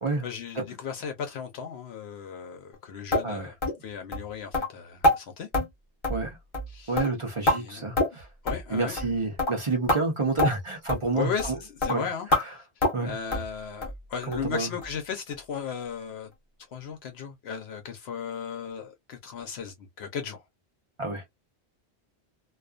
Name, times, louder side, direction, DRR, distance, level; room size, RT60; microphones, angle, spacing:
voice 1, 0.2-3.5 3.8-5.5 6.7-7.0 7.5-7.8 8.4-9.0 11.1-12.7 13.0-16.3 16.7-20.4, left 7 dB, 75° left, 0.8 m, -36 dB
sound 1, 3.1-3.3 3.6-3.8 4.1-4.2 4.5-4.7 5.0-5.2 5.5-5.7 6.0-6.3 6.5-6.7 7.0-7.6 8.0-8.2 8.5-8.6 9.0-9.1 9.4-9.5 9.9-10.0 10.4-10.5 10.9-11.0 11.4-11.5 11.8-11.9 12.3-12.4 12.8-13.0 13.3-13.5 13.8-14.0 14.3-14.4 14.8-14.9 15.3-15.4, left 1 dB, 30° left, 0.9 m, -25 dB
voice 2, 6.9-8.3 8.7-11.6 11.9-12.0 12.3-12.5 12.9-13.2 14.3-14.7 21.0-21.3, right 3 dB, 35° right, 0.5 m, -29 dB
2.3 x 2.3 x 2.4 m
omnidirectional pair, 1.1 m